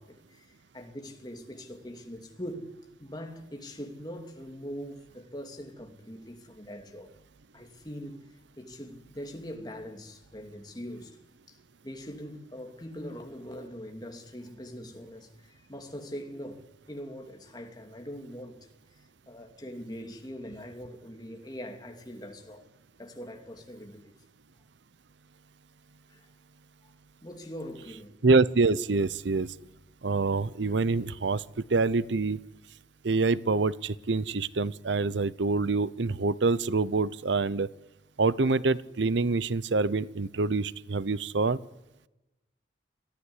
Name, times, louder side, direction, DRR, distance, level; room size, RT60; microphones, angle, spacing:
voice 1, 0.0-2.7 3.0-7.1 7.5-8.3 8.6-11.2 11.5-11.6 11.8-18.7 19.3-22.7 23.0-24.1 26.1-26.3 27.2-28.2, equal, 20° left, 2.7 m, -42 dB
voice 2, 28.2-29.6 30.0-32.4 33.0-37.7 38.2-41.6, right 3 dB, 75° right, 0.7 m, -26 dB
22.5 x 15.0 x 9.8 m
head